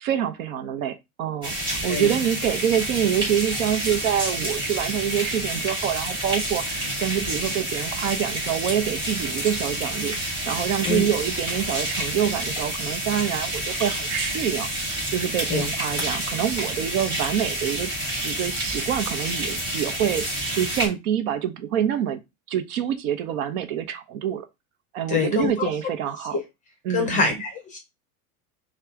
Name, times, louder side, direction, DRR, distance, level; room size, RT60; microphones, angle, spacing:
voice 1, 0.0-17.9 18.2-20.2 20.5-22.2 22.5-24.5 24.9-26.4 26.8-27.3, right 9 dB, 65° right, 0.9 m, -26 dB
sound 1, 1.4-20.9, right 1 dB, 10° right, 2.4 m, -29 dB
voice 2, 25.1-25.7 26.3-26.4 26.9-27.8, left 4 dB, 15° left, 0.7 m, -25 dB
5.9 x 2.4 x 3.6 m
supercardioid pair, 170°, 44 cm